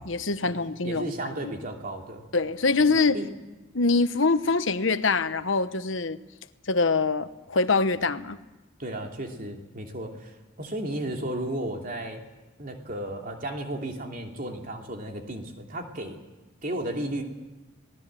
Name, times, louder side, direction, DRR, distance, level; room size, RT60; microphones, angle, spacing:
voice 1, 0.0-1.1 2.3-3.2 3.7-6.2 6.7-8.4, left 3 dB, 70° left, 11 dB, 1.1 m, -24 dB
voice 2, 0.8-2.2 3.1-3.3 8.8-12.2 12.6-16.2 16.6-17.2, right 1 dB, 45° right, 2 dB, 2.9 m, -34 dB
27.0 x 19.0 x 7.6 m, 1.1 s
head